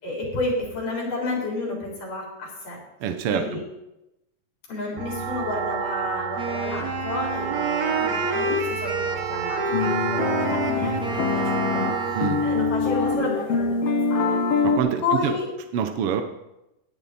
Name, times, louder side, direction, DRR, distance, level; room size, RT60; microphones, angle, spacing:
voice 1, 0.0-2.8 3.3-3.6 4.7-14.4 15.0-15.5, left 2 dB, 80° left, -3 dB, 5.5 m, -31 dB
voice 2, 3.0-3.6 12.1-12.4 14.6-15.3 15.7-16.2, right 8 dB, 75° right, 7 dB, 1.3 m, -25 dB
sound 1, 5.0-13.1, right 7 dB, 90° right, 2.7 m, -31 dB
Wind instrument woodwind instrument, 6.4-12.6, right 3 dB, 55° right, 1.0 m, -29 dB
sound 2, 9.7-14.8, left 5 dB, 60° left, 1.8 m, -24 dB
17.5 x 9.7 x 4.2 m, 0.93 s
omnidirectional pair, 3.7 m